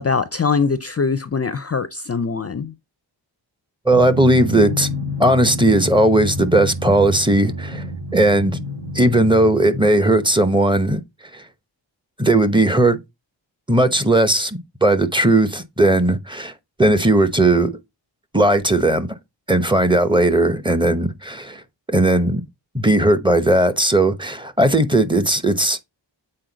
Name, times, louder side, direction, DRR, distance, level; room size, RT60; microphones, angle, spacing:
voice 1, 0.0-2.7, left 5 dB, 35° left, 0.5 m, -22 dB
voice 2, 3.9-4.9 5.2-7.8 8.1-8.6 8.9-11.0 12.2-13.0 13.7-16.5 16.8-17.8 18.3-19.1 19.5-21.6 21.9-22.4 22.7-25.8, right 1 dB, 10° right, 0.8 m, -17 dB
Drum, 3.9-10.4, left 1 dB, 70° right, 4.3 m, -29 dB
7.7 x 4.3 x 3.9 m
wide cardioid pair, 125°, 45 cm